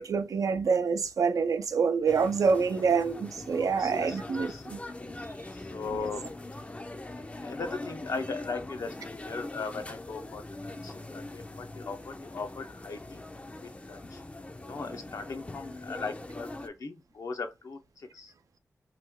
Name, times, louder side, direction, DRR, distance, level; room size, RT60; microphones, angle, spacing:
voice 1, 0.0-4.8 5.9-6.0, right 5 dB, 85° right, 0.4 m, -27 dB
sound 1, 2.1-16.7, left 2 dB, 25° left, 0.4 m, -42 dB
voice 2, 3.6-4.6 5.5-6.3 7.2-13.3 13.6-14.2 14.6-18.3, left 4 dB, 75° left, 0.7 m, -39 dB
3.1 x 2.2 x 3.5 m
wide cardioid pair, 70°, 6 cm